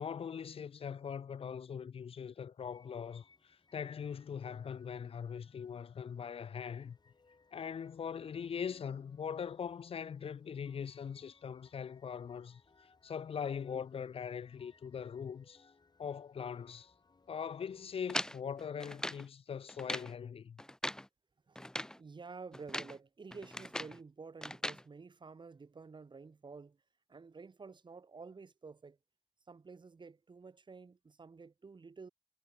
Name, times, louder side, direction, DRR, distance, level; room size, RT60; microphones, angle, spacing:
voice 1, 0.0-7.0 7.5-12.6 13.0-15.7 16.0-16.9 17.3-20.6, left 7 dB, 60° left, 0.5 m, -41 dB
sound 1, 2.7-18.8, left 4 dB, 40° left, 6.2 m, -69 dB
sound 2, 18.1-19.3 19.7-20.1 20.6-21.1 21.6-22.0 22.5-23.0 23.3-24.0 24.4-24.8, left 1 dB, 5° left, 1.1 m, -40 dB
voice 2, 22.0-26.8 27.1-29.0 29.5-32.1, right 4 dB, 45° right, 4.2 m, -51 dB
wide cardioid pair, 150°, 11 cm